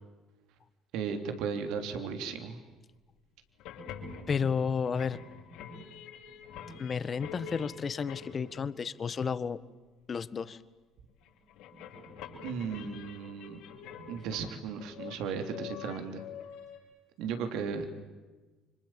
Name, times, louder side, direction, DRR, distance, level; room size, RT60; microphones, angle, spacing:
voice 1, 0.9-2.6 12.4-13.6 14.1-16.2 17.2-17.9, right 6 dB, 70° right, 7 dB, 3.4 m, -35 dB
sound 1, 3.5-8.9 11.1-16.8, left 6 dB, 75° left, 7.0 m, -46 dB
voice 2, 4.3-5.2 6.8-9.6 10.1-10.6, left 6 dB, 40° left, 15 dB, 1.5 m, -32 dB
30.0 x 26.0 x 7.6 m, 1.2 s
hypercardioid pair, 70°, 0 cm